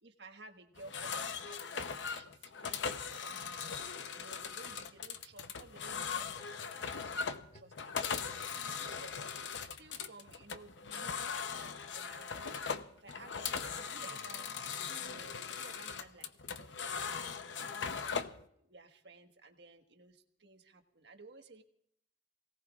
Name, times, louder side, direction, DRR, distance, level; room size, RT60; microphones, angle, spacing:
voice 1, 0.0-3.7 4.1-9.5 9.8-14.5 15.0-21.6, right 3 dB, 70° right, 5 dB, 1.4 m, -56 dB
sound 1, 0.8-18.4, left 6 dB, 85° left, 0.7 m, -39 dB
sound 2, 4.7-8.8 9.6-9.7, left 1 dB, 40° left, 1.2 m, -63 dB
27.5 x 18.0 x 2.4 m, 0.71 s
head